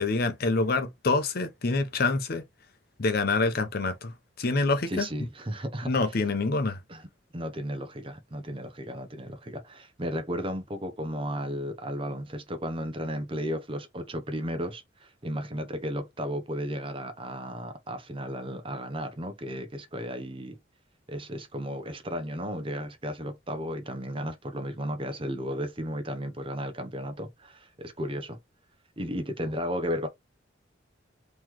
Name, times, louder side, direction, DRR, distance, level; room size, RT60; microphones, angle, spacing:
voice 1, 0.0-2.4 3.0-5.1 5.8-6.8, left 3 dB, 50° left, 0.7 m, -26 dB
voice 2, 4.9-6.2 6.9-7.1 7.3-20.6 21.1-28.4 29.0-30.1, equal, 30° right, 0.7 m, -34 dB
3.8 x 3.1 x 3.0 m
head